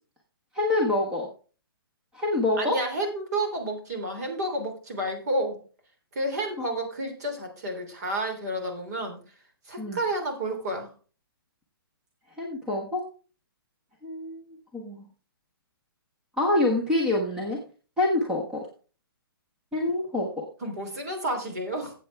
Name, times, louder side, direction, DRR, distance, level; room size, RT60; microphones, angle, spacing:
voice 1, 0.5-1.3 2.1-2.8 6.6-6.7 9.8-10.0 12.4-13.0 14.0-15.0 16.4-17.6 18.0-18.6 19.7-20.5, left 2 dB, 5° right, 0 dB, 1.0 m, -26 dB
voice 2, 2.6-5.6 6.1-9.2 9.7-10.9 20.6-21.9, right 1 dB, 45° right, 4 dB, 3.3 m, -30 dB
13.5 x 8.0 x 3.4 m, 0.37 s
hypercardioid pair, 170°, 12 cm